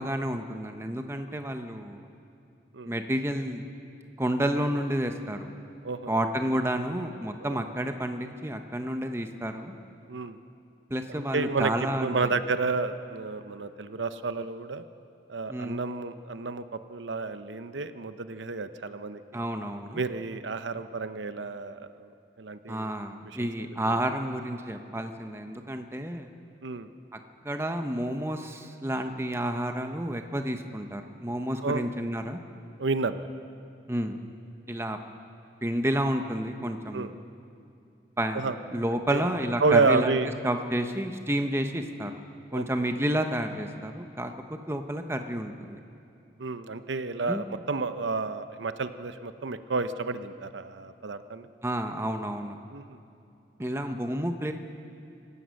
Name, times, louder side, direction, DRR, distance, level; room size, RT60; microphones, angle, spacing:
voice 1, 0.0-2.1 2.9-3.6 4.2-5.5 6.1-9.7 10.9-12.3 15.5-15.8 19.3-20.0 22.7-26.3 27.1-27.2 27.4-32.4 33.9-34.2 34.7-35.0 35.6-37.2 38.2-40.2 40.4-42.1 42.5-45.8 47.3-47.4 51.6-52.6 53.6-54.5, right 1 dB, 15° right, 6 dB, 0.9 m, -30 dB
voice 2, 11.1-11.7 12.0-14.8 15.3-16.6 16.9-19.4 19.9-22.1 22.4-22.9 23.2-23.5 23.8-23.9 26.6-26.9 31.6-31.8 32.8-33.3 36.9-37.1 38.3-38.6 39.1-39.2 39.6-40.3 42.5-42.6 46.4-51.5 52.7-52.8, right 4 dB, 90° right, 10 dB, 0.8 m, -30 dB
26.0 x 15.5 x 6.5 m, 2.6 s
head